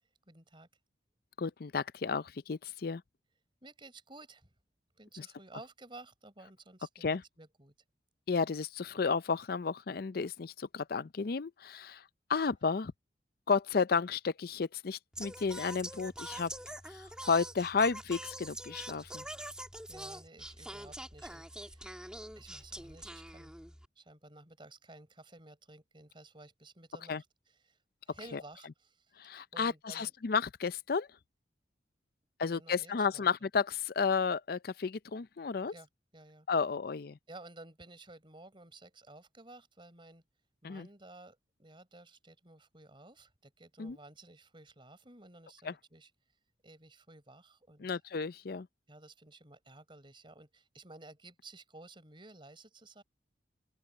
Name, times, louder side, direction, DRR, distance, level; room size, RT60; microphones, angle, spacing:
voice 1, 0.3-0.7 3.6-4.5 5.0-7.7 19.9-22.0 22.4-23.5 24.0-27.2 27.6-27.8 28.1-29.1 29.5-30.1 32.4-33.3 35.7-36.5 37.3-40.2 40.6-46.1 46.6-47.9 48.9-53.0, right 2 dB, 25° right, 4.8 m, -54 dB
voice 2, 1.4-3.0 5.2-5.3 7.0-7.2 8.3-12.0 12.3-12.9 13.5-16.5 16.9-19.2 27.1-27.2 28.3-28.4 29.2-31.1 32.4-35.7 36.5-37.2 40.6-40.9 43.8-44.0 45.6-45.7 47.8-48.7, left 5 dB, 55° left, 0.5 m, -32 dB
Singing, 15.1-23.9, right 1 dB, 5° right, 2.1 m, -45 dB
open air
head